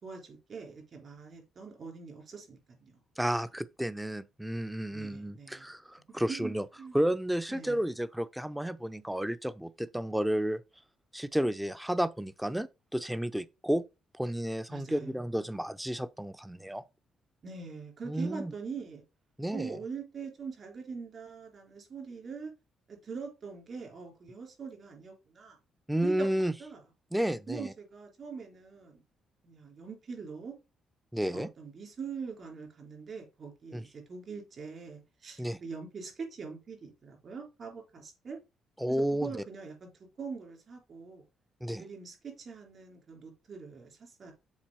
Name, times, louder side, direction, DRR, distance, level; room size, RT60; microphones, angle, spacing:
voice 1, 0.0-3.0 4.9-5.7 6.3-6.5 6.8-7.0 7.5-7.9 14.7-15.1 17.4-19.0 19.5-22.5 22.9-25.6 26.0-26.8 27.5-29.0 29.4-30.5 31.3-38.4 38.9-39.9 40.2-41.2 41.8-44.3, right 5 dB, 50° right, 3.3 m, -43 dB
voice 2, 3.2-6.6 6.9-10.6 11.1-13.9 14.2-16.8 18.1-18.5 19.4-19.8 25.9-26.5 27.1-27.7 31.1-31.5 33.7-33.8 35.4-35.6 38.8-39.3 41.6-41.8, right 1 dB, 5° right, 0.6 m, -32 dB
7.3 x 4.4 x 4.7 m
cardioid pair, 90°, 0 cm